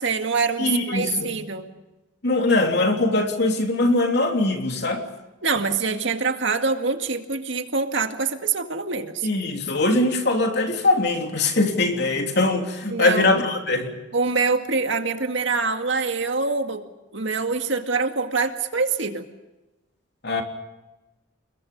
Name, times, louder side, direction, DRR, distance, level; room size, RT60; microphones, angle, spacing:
voice 1, 0.0-1.7 5.4-9.3 12.9-13.3 14.1-16.8 17.1-19.3, right 4 dB, 65° right, 6 dB, 2.1 m, -25 dB
voice 2, 0.6-1.4 2.2-5.0 9.2-13.9 20.2-20.4, left 2 dB, 55° left, 3 dB, 3.4 m, -22 dB
29.0 x 21.5 x 5.5 m, 1.0 s
head